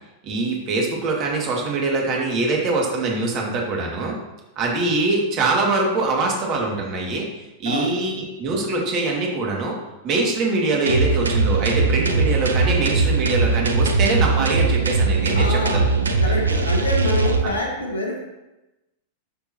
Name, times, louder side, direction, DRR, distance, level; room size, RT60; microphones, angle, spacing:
voice 1, 0.2-4.2 4.6-9.8 10.0-15.8 16.2-16.3 17.4-17.5, right 3 dB, 40° right, -1 dB, 2.4 m, -23 dB
voice 2, 7.6-8.0 15.4-15.9 16.2-18.2, left 2 dB, 75° left, 0 dB, 2.0 m, -26 dB
sound 1, 10.9-17.4, right 4 dB, 80° right, 0.8 m, -20 dB
12.0 x 6.9 x 3.0 m, 1.0 s
figure-of-eight pair, 95°, 0 cm